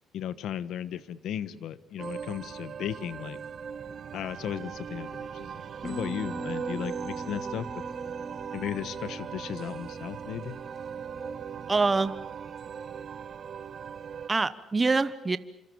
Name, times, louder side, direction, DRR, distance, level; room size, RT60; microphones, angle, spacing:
voice 1, 0.1-3.4 4.1-7.7 8.5-10.6, left 10 dB, 80° left, 15 dB, 1.3 m, -36 dB
sound 1, 2.0-14.3, right 7 dB, 55° right, 1.4 m, -39 dB
Bass guitar, 5.8-12.1, equal, 5° right, 2.4 m, -43 dB
voice 2, 11.7-12.1 14.3-15.4, right 3 dB, 25° right, 14 dB, 1.0 m, -25 dB
27.5 x 26.0 x 7.1 m, 0.91 s
cardioid pair, 90°, 0 cm